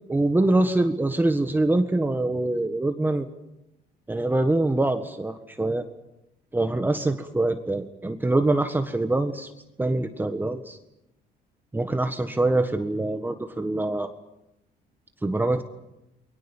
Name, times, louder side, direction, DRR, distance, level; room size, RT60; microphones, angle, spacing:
voice 1, 0.1-3.3 4.1-5.9 6.5-9.5 9.8-10.8 11.7-14.1 15.2-15.6, right 2 dB, 10° right, 7 dB, 1.6 m, -24 dB
29.5 x 22.0 x 7.3 m, 0.89 s
cardioid pair, 110°, 17 cm